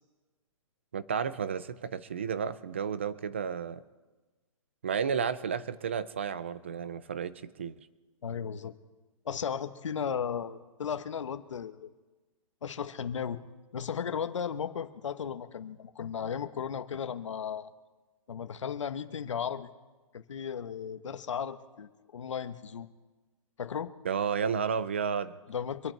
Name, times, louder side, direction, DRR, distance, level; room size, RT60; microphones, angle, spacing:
voice 1, 0.9-3.8 4.8-7.7 24.0-25.4, right 7 dB, 20° right, 16 dB, 0.4 m, -32 dB
voice 2, 8.2-8.7 9.2-11.9 12.6-13.4 13.7-17.7 18.3-19.7 20.1-22.9 23.6-23.9 25.5-25.9, left 7 dB, 60° left, 10 dB, 1.2 m, -35 dB
25.5 x 9.0 x 4.5 m, 1.2 s
hypercardioid pair, 180°, 17 cm